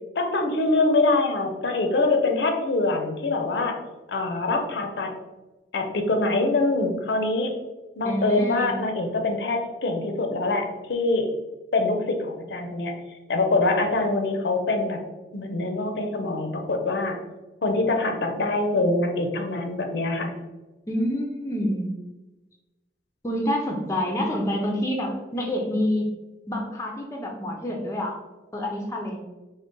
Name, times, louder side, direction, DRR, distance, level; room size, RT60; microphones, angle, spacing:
voice 1, 0.2-3.8 4.1-5.1 5.7-7.5 8.0-11.3 11.7-12.9 13.3-15.0 15.3-17.2 17.6-20.3, left 2 dB, 65° left, 4 dB, 0.5 m, -24 dB
voice 2, 8.0-8.8 20.9-21.9 23.2-26.1 26.5-28.2 28.5-29.2, left 1 dB, 15° left, 0 dB, 0.4 m, -27 dB
3.7 x 2.1 x 3.7 m, 1.1 s
head